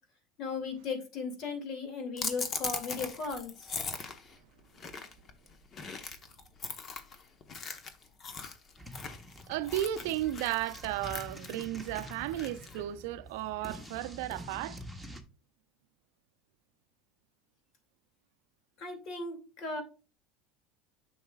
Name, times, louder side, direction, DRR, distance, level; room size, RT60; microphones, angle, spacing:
voice 1, 0.4-3.8 18.8-19.8, left 4 dB, 55° left, 2.4 m, -37 dB
sound 1, 2.2-12.8, left 5 dB, 35° left, 1.0 m, -40 dB
sound 2, 8.8-15.2, equal, 5° left, 1.2 m, -47 dB
voice 2, 9.5-14.8, right 13 dB, 75° right, 0.5 m, -34 dB
9.3 x 6.2 x 2.4 m
supercardioid pair, 105°, 0 cm